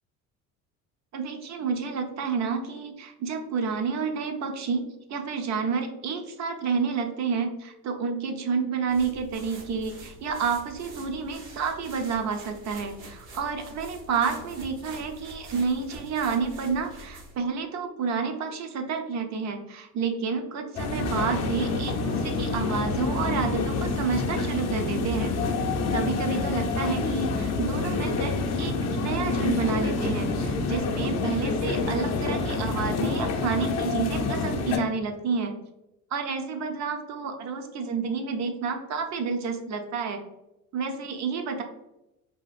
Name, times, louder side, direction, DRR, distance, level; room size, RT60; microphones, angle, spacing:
voice 1, 1.1-4.8 5.1-25.3 25.9-35.5 36.1-40.2 40.7-41.6, right 5 dB, 40° right, 5 dB, 0.5 m, -30 dB
sound 1, 8.9-17.5, right 1 dB, 65° right, 0.9 m, -46 dB
sound 2, 20.8-34.8, left 3 dB, 40° left, 0.5 m, -27 dB
2.7 x 2.4 x 2.3 m, 0.91 s
hypercardioid pair, 70°, 42 cm